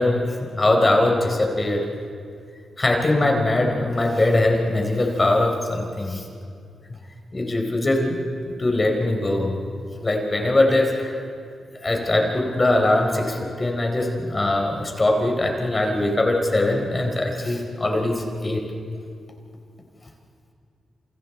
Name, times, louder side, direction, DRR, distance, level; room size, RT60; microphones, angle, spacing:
voice 1, 0.0-1.9 2.8-6.2 7.3-8.2 8.6-11.2 11.8-18.6, left 2 dB, 30° left, 2 dB, 4.1 m, -21 dB
28.5 x 28.0 x 4.4 m, 2.3 s
cardioid pair, 80°, 0 cm